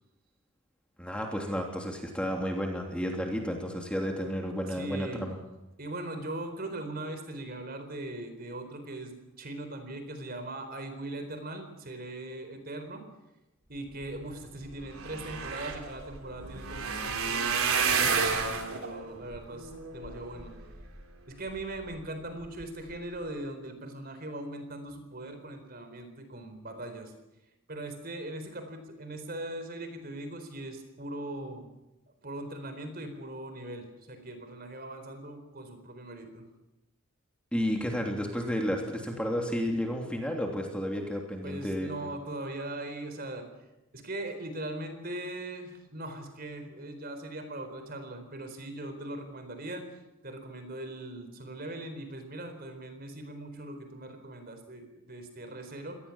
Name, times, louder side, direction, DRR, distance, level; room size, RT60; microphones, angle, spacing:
voice 1, 1.0-5.4 37.5-41.9, equal, 5° left, 1 dB, 3.1 m, -32 dB
voice 2, 4.7-5.3 5.8-13.1 13.7-20.5 21.3-27.1 27.7-31.7 32.2-36.5 41.4-43.5 43.9-49.8 50.2-56.0, right 1 dB, 45° right, 8 dB, 4.1 m, -40 dB
sound 1, 14.6-21.0 21.6-22.0 22.4-22.6 22.9-23.0, right 5 dB, 85° right, 3.7 m, -31 dB
25.5 x 19.0 x 7.3 m, 0.95 s
head